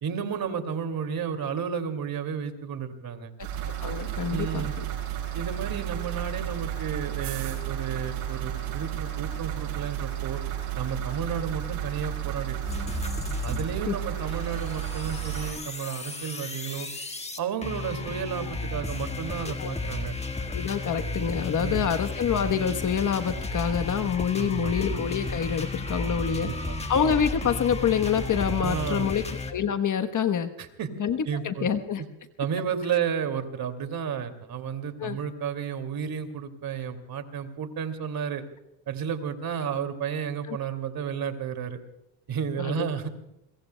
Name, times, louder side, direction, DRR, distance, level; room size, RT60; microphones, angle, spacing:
voice 1, 0.0-3.3 4.3-4.8 5.3-10.4 10.8-12.6 13.4-16.9 17.4-20.1 21.6-21.9 24.4-24.7 26.3-26.8 28.6-29.1 30.6-30.9 31.2-31.7 32.4-38.4 38.9-41.8 42.3-43.1, right 7 dB, 45° right, 7 dB, 2.6 m, -32 dB
sound 1, 3.4-15.5, right 11 dB, 85° right, 6.8 m, -32 dB
voice 2, 3.8-4.8 13.9-14.0 19.4-19.7 20.5-29.2 29.5-30.5 31.0-31.2 31.4-32.0 35.0-35.2 40.5-40.6 42.6-42.9, left 8 dB, 40° left, 9 dB, 1.2 m, -27 dB
sound 2, 12.7-13.6 13.9-29.5, left 2 dB, 15° left, 1.7 m, -33 dB
27.5 x 22.5 x 2.3 m, 0.86 s
supercardioid pair, 100°, 49 cm